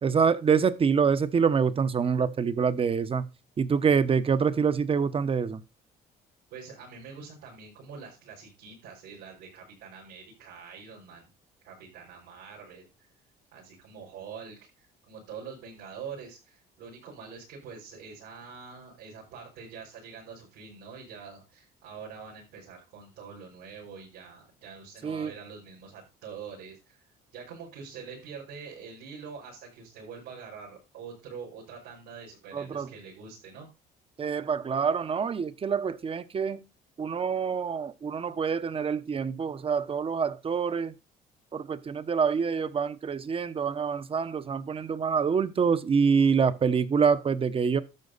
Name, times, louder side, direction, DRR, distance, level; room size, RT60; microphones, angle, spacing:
voice 1, 0.0-3.3 3.6-5.6 25.0-25.3 32.5-32.9 34.2-36.6 37.0-40.9 41.5-47.8, right 6 dB, 35° right, 1.0 m, -26 dB
voice 2, 6.5-11.3 11.6-12.8 13.5-27.0 27.3-33.7, right 6 dB, 90° right, 6.0 m, -45 dB
12.0 x 7.1 x 4.1 m
cardioid pair, 110°, 17 cm